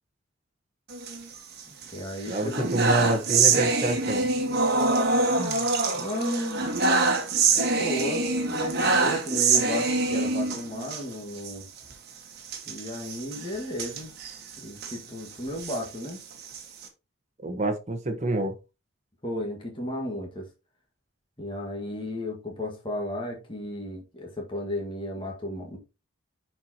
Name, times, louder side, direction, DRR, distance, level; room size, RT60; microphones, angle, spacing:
sound 1, 0.9-1.9 2.2-11.0 11.4-11.5 11.8-11.9 12.5-15.0 15.5-16.9, right 3 dB, 50° right, 1.4 m, -25 dB
voice 1, 1.7-2.7 5.3-6.7 7.5-11.7 12.7-14.1 14.6-16.2 19.2-20.5 21.4-25.8, left 1 dB, 25° left, 1.6 m, -34 dB
voice 2, 2.3-4.3 17.4-18.5, right 2 dB, 35° right, 1.1 m, -27 dB
11.0 x 4.6 x 2.8 m
head